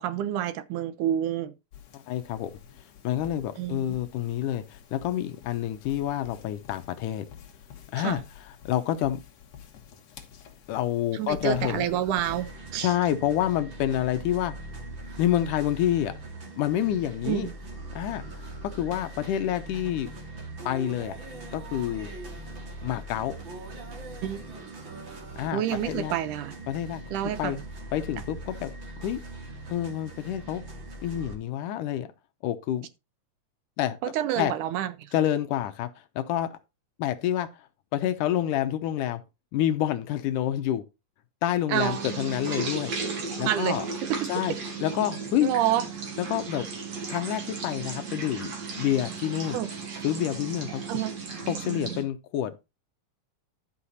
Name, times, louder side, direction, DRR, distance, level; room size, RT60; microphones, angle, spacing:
voice 1, 0.0-1.5 3.6-3.8 8.0-8.2 11.1-12.9 17.3-17.6 24.2-24.4 25.5-26.6 27.1-27.6 34.0-35.2 41.7-42.0 43.5-43.8 44.1-44.3 45.4-45.9 49.5-49.7 50.9-51.2, right 11 dB, 75° right, 2.3 m, -28 dB
sound 1, 1.7-12.4, left 8 dB, 60° left, 2.4 m, -48 dB
voice 2, 2.1-2.5 3.0-7.3 7.9-8.2 8.7-9.2 10.7-11.8 12.8-14.5 15.2-16.1 16.6-17.5 18.0-18.2 18.6-20.1 20.7-21.2 21.5-22.1 22.8-23.3 25.4-26.1 26.7-27.0 27.4-27.6 27.9-28.7 29.0-29.2 29.7-30.6 31.0-32.1 32.4-32.9 33.8-34.0 34.4-34.5 35.1-35.9 36.2-36.6 37.0-37.5 37.9-39.2 39.5-40.8 41.4-42.9 43.4-43.9 44.3-44.5 44.8-45.5 46.2-46.7 47.1-49.6 50.0-50.8 51.5-52.5, left 11 dB, 75° left, 2.3 m, -28 dB
sound 2, 11.5-31.3, right 2 dB, 40° right, 2.7 m, -41 dB
sound 3, 41.7-52.0, right 4 dB, 55° right, 3.6 m, -35 dB
12.0 x 5.8 x 4.1 m
omnidirectional pair, 3.8 m